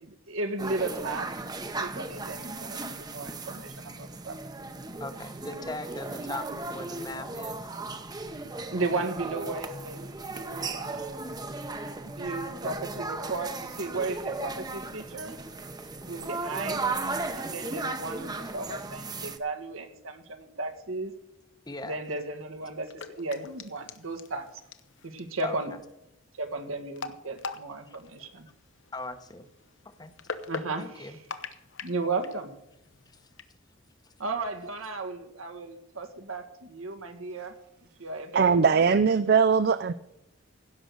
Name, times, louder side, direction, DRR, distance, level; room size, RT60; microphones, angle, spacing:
voice 1, 0.0-1.4 1.8-4.4 8.7-10.0 10.3-11.2 12.1-15.4 16.1-16.8 17.3-21.1 21.8-22.9 23.2-24.5 25.0-25.7 26.4-28.5 30.5-31.2 31.8-32.5 34.2-37.5 38.0-38.8, right 3 dB, 85° right, 7 dB, 1.7 m, -35 dB
sound 1, 0.6-19.4, right 3 dB, 20° right, 0.8 m, -36 dB
voice 2, 5.0-7.7 11.5-11.6 11.8-12.0 21.7-22.0 25.4-25.8 27.9-28.0 28.9-29.5 30.0-30.1 30.8-31.2 33.1-33.2 34.0-34.1, left 2 dB, 20° left, 9 dB, 0.9 m, -39 dB
sound 2, 22.7-33.4, left 4 dB, 65° left, 1.0 m, -43 dB
voice 3, 38.3-39.9, right 5 dB, 50° right, 14 dB, 0.4 m, -21 dB
16.5 x 6.4 x 6.8 m, 0.86 s
head